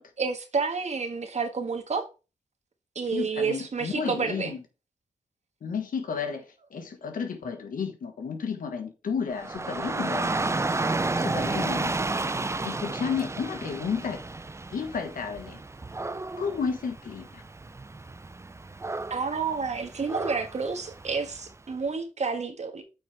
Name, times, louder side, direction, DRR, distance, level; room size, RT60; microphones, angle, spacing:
voice 1, 0.2-2.1 2.9-4.5 19.1-22.8, right 5 dB, 55° right, 1.6 m, -29 dB
voice 2, 3.1-4.6 5.6-10.3 11.2-11.9 12.6-14.2 14.7-15.6 16.4-17.4, left 6 dB, 85° left, 1.5 m, -32 dB
Dog / Rain, 9.3-21.5, right 3 dB, 20° right, 0.5 m, -32 dB
7.8 x 6.0 x 3.4 m
wide cardioid pair, 90°, 14 cm